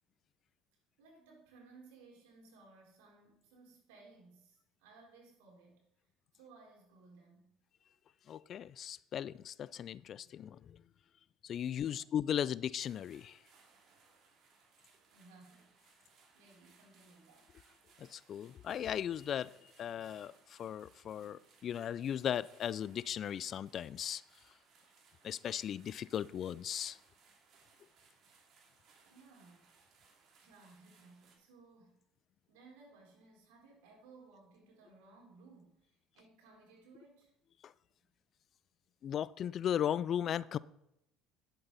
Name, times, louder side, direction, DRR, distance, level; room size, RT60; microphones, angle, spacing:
voice 1, 1.0-5.8 6.3-7.5 11.7-12.1 15.1-15.7 16.3-17.6 29.0-30.1 30.4-32.0 32.5-37.3, right 3 dB, 80° right, 3.9 m, -60 dB
voice 2, 8.3-10.8 11.4-13.4 18.0-19.5 19.8-24.2 25.2-27.0 37.6-37.7 39.0-40.6, left 9 dB, 50° left, 0.3 m, -37 dB
sound 1, 12.8-31.4, right 5 dB, 55° right, 2.8 m, -67 dB
10.5 x 7.7 x 4.1 m
supercardioid pair, 80°, 0 cm